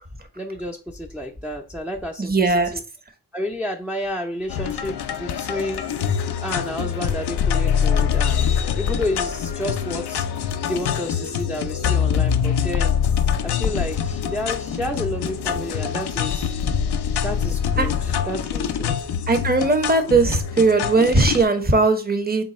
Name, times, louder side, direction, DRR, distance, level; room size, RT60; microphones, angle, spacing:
voice 1, 0.4-2.8 3.3-6.1 6.4-10.2 10.7-12.9 13.4-16.5 17.2-18.9, left 1 dB, 5° right, -1 dB, 0.5 m, -30 dB
voice 2, 2.2-2.7 17.8-17.9 19.3-22.4, right 3 dB, 25° right, 7 dB, 0.9 m, -18 dB
sound 1, 4.5-21.4, left 8 dB, 75° left, 0.5 m, -24 dB
3.8 x 2.2 x 4.1 m, 0.35 s
cardioid pair, 50°, 39 cm